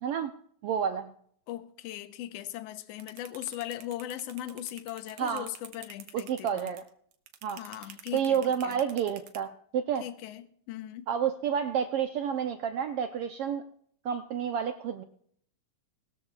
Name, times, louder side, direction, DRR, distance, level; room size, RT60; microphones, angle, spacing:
voice 1, 0.6-1.1 5.2-5.5 6.1-6.8 7.4-7.6 8.1-10.0 11.1-13.6 14.0-15.0, right 8 dB, 85° right, 1.3 m, -30 dB
voice 2, 1.5-6.7 7.5-8.8 10.0-11.1, left 12 dB, 70° left, 1.7 m, -39 dB
sound 1, 3.0-9.4, right 9 dB, 65° right, 2.0 m, -48 dB
21.0 x 13.5 x 2.4 m
omnidirectional pair, 3.5 m